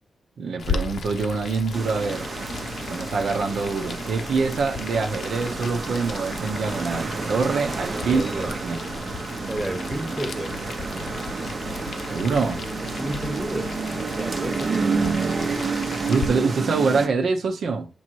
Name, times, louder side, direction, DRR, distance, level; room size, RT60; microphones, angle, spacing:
voice 1, 0.4-2.3 2.8-8.8 11.4-11.6 12.1-12.6 14.7-15.6 16.1-17.9, right 4 dB, 70° right, 0.9 m, -25 dB
Boiling, 0.6-16.3, left 5 dB, 60° left, 0.8 m, -36 dB
sound 1, 1.7-17.1, right 4 dB, 40° right, 0.8 m, -30 dB
voice 2, 7.7-8.5 9.5-10.5 12.8-13.7 14.1-15.1, right 1 dB, 15° right, 1.3 m, -32 dB
7.1 x 3.0 x 4.5 m
wide cardioid pair, 135°, 0 cm